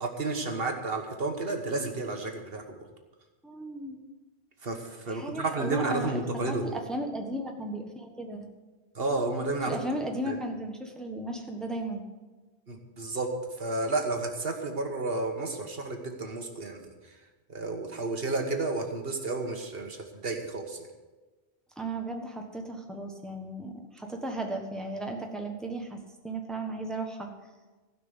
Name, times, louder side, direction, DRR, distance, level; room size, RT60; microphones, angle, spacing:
voice 1, 0.0-2.6 4.6-4.8 5.1-6.7 8.9-9.8 10.3-10.4 12.7-13.3 13.6-16.9 17.5-20.0 20.2-20.8, right 3 dB, 65° right, 4 dB, 1.6 m, -31 dB
voice 2, 3.4-4.0 5.0-6.2 6.5-8.5 9.6-12.0 21.8-26.0 26.2-27.3, right 1 dB, ahead, 2 dB, 1.3 m, -35 dB
16.0 x 6.0 x 8.1 m, 1.2 s
omnidirectional pair, 1.1 m